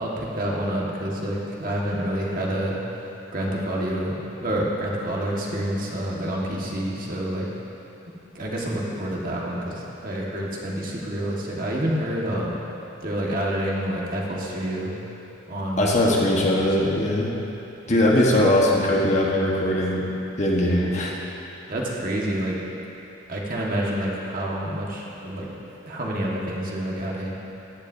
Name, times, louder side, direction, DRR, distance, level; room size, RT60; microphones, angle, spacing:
voice 1, 0.0-2.8 3.3-7.5 8.3-12.6 13.0-14.9 15.5-15.9 16.5-16.9 18.3-18.5 21.7-22.6 23.3-27.3, right 1 dB, 45° right, -4 dB, 1.6 m, -28 dB
voice 2, 15.8-17.3 17.9-20.1 20.4-21.1, left 1 dB, 35° left, -3 dB, 1.3 m, -20 dB
15.0 x 12.0 x 2.7 m, 2.9 s
head